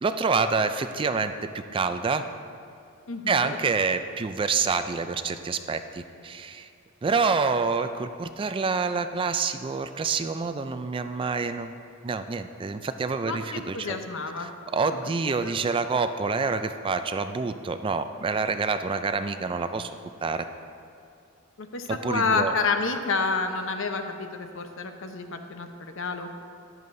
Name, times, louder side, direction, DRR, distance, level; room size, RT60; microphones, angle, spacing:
voice 1, 0.0-2.2 3.3-6.7 7.0-11.7 12.0-14.0 14.4-19.9 20.2-20.5 21.9-22.5, right 4 dB, 25° right, 9 dB, 0.3 m, -27 dB
voice 2, 3.1-3.5 13.2-14.5 15.4-15.5 21.6-25.7 26.0-26.3, left 4 dB, 65° left, 6 dB, 0.8 m, -29 dB
13.5 x 11.0 x 2.6 m, 2.5 s
head